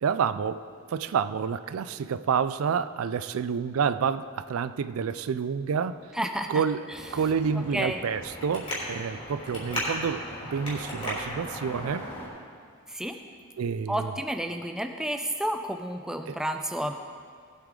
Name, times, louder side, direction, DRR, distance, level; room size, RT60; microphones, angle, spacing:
voice 1, 0.0-6.0 6.5-6.9 7.1-12.1 13.6-14.1 16.3-16.4, right 6 dB, 75° right, 13 dB, 0.4 m, -29 dB
voice 2, 6.1-6.6 7.7-8.0 12.9-13.2 13.9-16.9, right 1 dB, 5° right, 5 dB, 0.5 m, -30 dB
Traffic noise roadway noise, 6.9-12.3, equal, 30° left, 3.4 m, -36 dB
18.5 x 8.3 x 3.8 m, 2.1 s
head